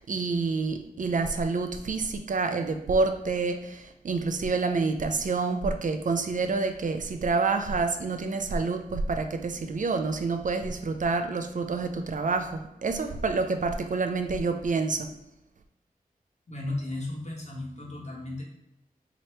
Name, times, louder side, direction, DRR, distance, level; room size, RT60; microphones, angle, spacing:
voice 1, 0.0-15.1, right 4 dB, 60° right, 7 dB, 0.4 m, -28 dB
voice 2, 16.5-18.4, left 2 dB, 50° left, -2 dB, 1.2 m, -35 dB
4.3 x 2.9 x 3.2 m, 0.87 s
wide cardioid pair, 90°, 15 cm